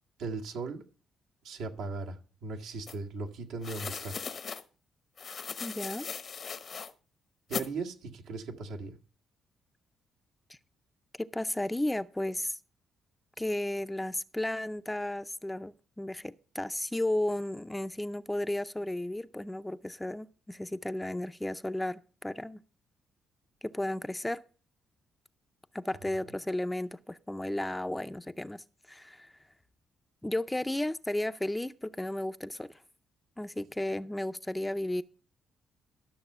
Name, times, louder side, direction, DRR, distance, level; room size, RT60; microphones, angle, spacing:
voice 1, 0.2-0.8 1.4-4.2 7.5-9.0, right 3 dB, 85° right, 1.8 m, -38 dB
sound 1, 2.9-3.0 3.6-4.6 5.2-6.9 7.5-7.7, left 6 dB, 50° left, 0.9 m, -38 dB
voice 2, 5.6-6.1 10.5-10.6 11.2-12.6 13.4-22.6 23.6-24.4 25.7-29.3 30.2-32.8 33.4-35.0, left 1 dB, 10° left, 0.5 m, -34 dB
13.0 x 6.7 x 5.5 m
cardioid pair, 90°, 0 cm